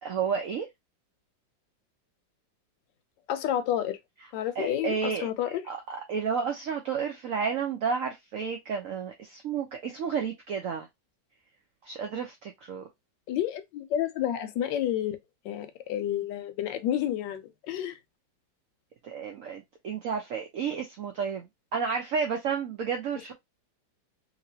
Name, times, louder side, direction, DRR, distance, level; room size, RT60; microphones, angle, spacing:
voice 1, 0.0-0.7 4.6-5.3 5.7-10.9 11.8-12.9 19.0-23.3, right 6 dB, 80° right, 0.7 m, -31 dB
voice 2, 3.3-4.0 4.3-5.7 13.3-15.2 15.4-18.0, left 11 dB, 75° left, 1.2 m, -30 dB
3.0 x 2.8 x 2.7 m
omnidirectional pair, 2.1 m